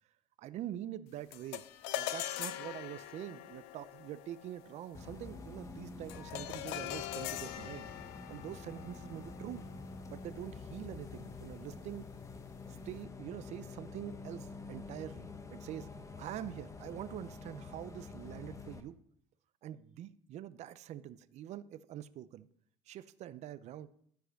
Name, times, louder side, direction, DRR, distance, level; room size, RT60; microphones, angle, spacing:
voice 1, 0.4-1.6 1.9-7.9 8.3-9.7 10.1-12.0 12.8-15.9 16.2-19.0 19.6-22.5 22.9-23.9, right 12 dB, 60° right, 15 dB, 0.7 m, -45 dB
sound 1, 1.3-10.8, left 13 dB, 90° left, 0.6 m, -43 dB
Bus, 4.9-18.8, left 3 dB, 25° left, 1.2 m, -48 dB
13.0 x 4.9 x 6.4 m, 0.66 s
supercardioid pair, 85°, 13 cm